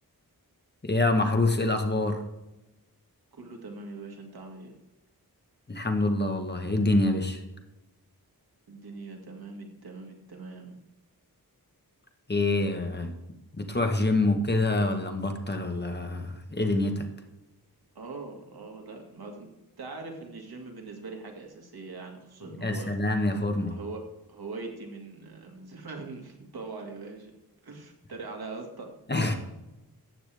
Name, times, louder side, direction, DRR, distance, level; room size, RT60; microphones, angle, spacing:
voice 1, 0.8-2.2 5.7-7.4 12.3-13.1 13.6-17.1 22.6-23.8 29.1-29.3, left 2 dB, 30° left, 5 dB, 1.3 m, -26 dB
voice 2, 3.3-4.8 8.7-10.8 17.9-19.5 19.8-22.9 23.7-24.0 24.3-27.4 27.6-29.4, right 3 dB, 80° right, 2 dB, 2.1 m, -42 dB
14.0 x 8.7 x 3.5 m, 0.99 s
wide cardioid pair, 100°, 37 cm